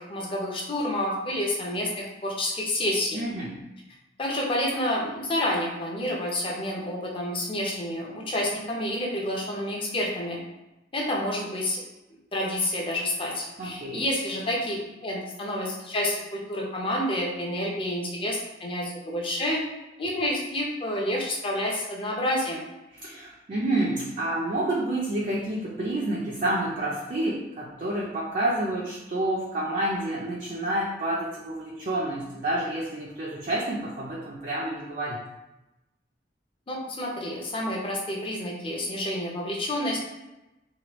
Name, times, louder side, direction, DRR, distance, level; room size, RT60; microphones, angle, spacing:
voice 1, 0.0-3.2 4.2-10.4 10.9-11.8 12.3-19.6 20.0-22.6 36.7-40.0, left 1 dB, 30° left, -2 dB, 0.6 m, -29 dB
voice 2, 3.1-3.5 13.6-14.0 23.0-35.2, right 1 dB, 45° right, -5 dB, 0.4 m, -29 dB
3.0 x 2.2 x 3.0 m, 0.98 s
head